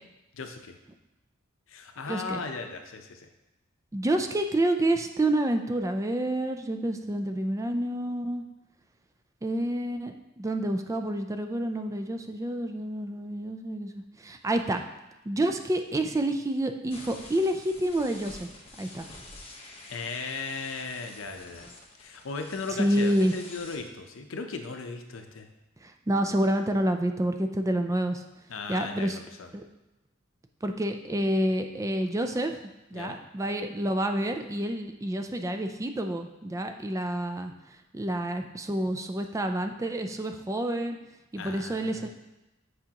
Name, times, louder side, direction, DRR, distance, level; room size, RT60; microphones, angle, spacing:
voice 1, 0.3-0.8 1.7-3.3 19.9-21.7 22.0-25.5 28.5-29.5 32.9-33.2 41.4-42.1, left 4 dB, 75° left, 5 dB, 0.7 m, -37 dB
voice 2, 2.1-2.4 3.9-8.4 9.4-14.8 15.3-18.5 18.8-19.1 22.7-23.3 25.8-28.2 28.7-29.2 29.5-29.6 30.6-32.6 32.9-41.0 41.3-42.1, right 1 dB, 15° right, 6 dB, 0.4 m, -28 dB
sound 1, 16.9-23.8, left 2 dB, 30° left, 1.0 m, -47 dB
8.2 x 4.9 x 2.9 m, 0.98 s
head